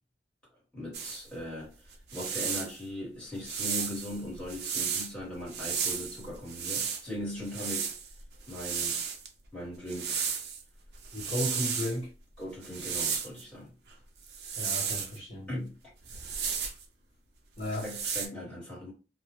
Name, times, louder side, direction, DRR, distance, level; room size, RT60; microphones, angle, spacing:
voice 1, 0.7-7.9 8.5-9.0 9.5-10.3 12.4-13.7 15.5-15.7 17.8-18.9, left 1 dB, 5° left, 1.3 m, -39 dB
sound 1, 0.9-1.2 1.9-2.8 3.4-5.1 5.5-7.0 7.4-9.3 9.9-10.6 11.0-12.0 12.6-13.4 14.3-15.2 16.0-16.8 17.6-18.3, right 6 dB, 70° right, 0.5 m, -33 dB
voice 2, 11.1-12.1 14.6-15.5 17.6-17.9, left 1 dB, 40° left, 0.7 m, -34 dB
2.3 x 2.1 x 2.9 m
head